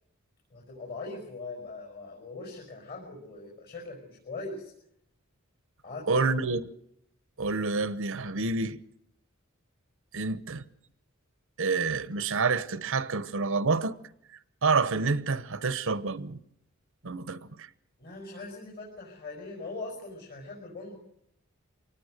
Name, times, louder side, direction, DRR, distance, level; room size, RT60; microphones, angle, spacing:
voice 1, 0.5-4.7 5.8-6.3 18.0-21.0, left 3 dB, 50° left, 5.7 m, -41 dB
voice 2, 6.1-6.6 7.4-8.8 10.1-10.6 11.6-14.0 14.6-16.4 17.0-17.7, right 4 dB, 65° right, 0.9 m, -28 dB
24.5 x 19.0 x 6.6 m
head